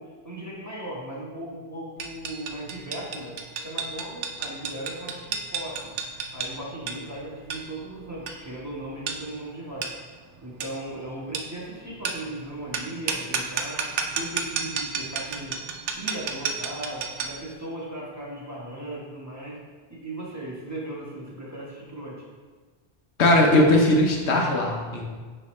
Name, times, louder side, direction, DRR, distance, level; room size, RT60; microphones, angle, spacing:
voice 1, 0.0-3.4 3.6-6.0 6.3-9.9 10.4-15.6 16.0-19.6 19.9-22.2, right 1 dB, 15° right, -6 dB, 1.4 m, -37 dB
sound 1, 2.0-17.5, right 5 dB, 90° right, 0.9 m, -33 dB
voice 2, 23.2-25.0, left 1 dB, 75° left, 1 dB, 1.2 m, -19 dB
9.5 x 3.3 x 3.2 m, 1.4 s
omnidirectional pair, 1.1 m